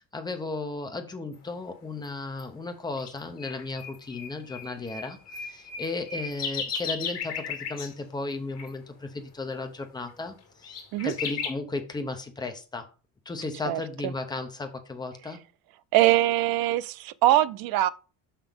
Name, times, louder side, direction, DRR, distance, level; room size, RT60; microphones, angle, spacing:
voice 1, 0.0-12.9 13.3-15.4, left 3 dB, 10° left, 0.7 m, -35 dB
sound 1, 2.4-2.5 3.0-3.1 3.4-7.9 8.6-8.7 10.1-10.2 10.6-11.5, left 6 dB, 40° left, 2.0 m, -35 dB
voice 2, 13.6-14.1 15.9-17.9, right 14 dB, 65° right, 0.5 m, -23 dB
6.0 x 5.8 x 3.5 m
cardioid pair, 165°, 39 cm